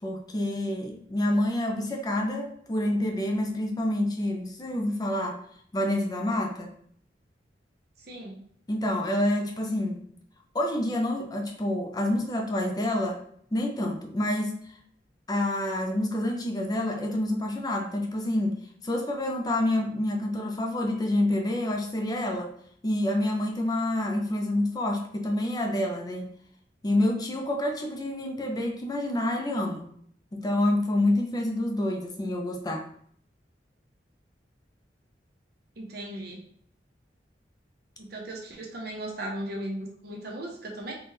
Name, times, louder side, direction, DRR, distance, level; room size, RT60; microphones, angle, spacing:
voice 1, 0.0-5.4 5.7-6.7 8.7-10.0 10.5-13.2 13.5-14.8 15.3-22.5 22.8-26.4 26.8-29.9 30.3-32.9, left 1 dB, 20° left, 2 dB, 0.5 m, -28 dB
voice 2, 8.0-8.4 35.8-36.4 38.0-40.9, right 1 dB, 60° right, 0 dB, 0.9 m, -37 dB
4.2 x 2.3 x 3.2 m, 0.62 s
head